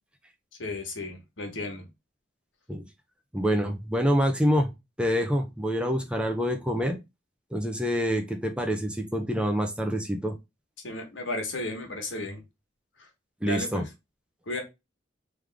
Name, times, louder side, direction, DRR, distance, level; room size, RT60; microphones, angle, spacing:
voice 1, 0.6-1.9 10.8-12.4 13.4-13.9 14.5-14.6, left 2 dB, 85° left, 3 dB, 1.5 m, -34 dB
voice 2, 3.3-4.7 5.0-7.0 7.5-10.4 13.4-13.9, equal, 5° right, 4 dB, 0.6 m, -26 dB
3.5 x 3.3 x 3.4 m, 0.23 s
head